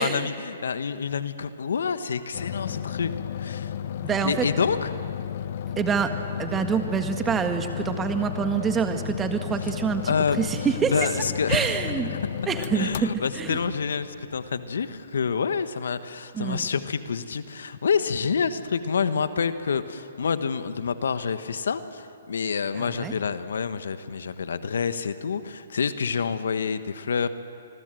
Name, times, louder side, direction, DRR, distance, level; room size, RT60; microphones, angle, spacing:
voice 1, 0.0-3.1 3.4-3.7 4.2-4.9 10.0-10.4 10.9-11.8 12.7-27.3, left 6 dB, 75° left, 11 dB, 1.3 m, -27 dB
sound 1, 2.3-14.9, left 9 dB, 55° left, 0.8 m, -33 dB
voice 2, 4.0-4.5 5.8-6.1 6.4-11.1 11.5-12.2 12.5-13.6 16.3-16.7 22.7-23.1, right 7 dB, 15° right, 7 dB, 1.8 m, -26 dB
27.0 x 21.5 x 7.8 m, 2.4 s
hypercardioid pair, 135°, 0 cm